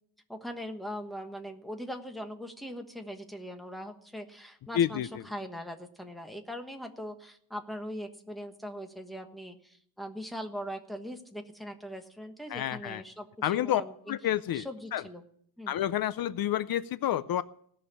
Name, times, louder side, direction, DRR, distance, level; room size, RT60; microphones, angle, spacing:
voice 1, 0.3-13.9 14.5-15.2 15.6-15.7, equal, ahead, 5 dB, 1.3 m, -41 dB
voice 2, 4.7-5.1 12.5-13.0 13.4-13.8 14.1-14.7 14.9-15.0 15.7-17.4, left 11 dB, 65° left, 15 dB, 0.6 m, -29 dB
17.5 x 6.6 x 9.9 m, 0.64 s
wide cardioid pair, 165°, 39 cm